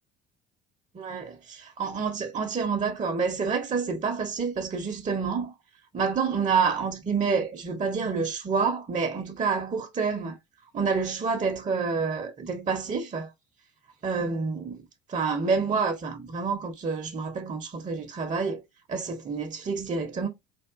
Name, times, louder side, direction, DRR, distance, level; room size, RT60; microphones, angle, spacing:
voice 1, 0.9-5.5 5.9-10.4 10.7-13.3 14.0-18.6 18.9-20.3, right 5 dB, 25° right, 0.7 m, -28 dB
3.4 x 2.4 x 2.4 m
hypercardioid pair, 60°, 30 cm